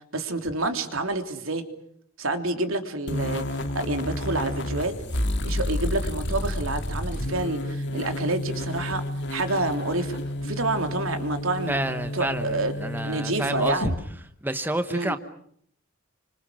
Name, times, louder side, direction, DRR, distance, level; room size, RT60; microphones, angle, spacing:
voice 1, 0.1-1.6 2.2-4.9 5.4-9.0 9.3-11.7 12.1-12.7 13.0-13.9 14.9-15.2, right 2 dB, 70° right, 3.3 m, -28 dB
sound 1, 3.1-14.0, left 1 dB, 55° left, 2.5 m, -30 dB
voice 2, 11.7-13.9 14.4-15.2, right 1 dB, 10° right, 1.1 m, -29 dB
29.5 x 26.0 x 6.3 m
head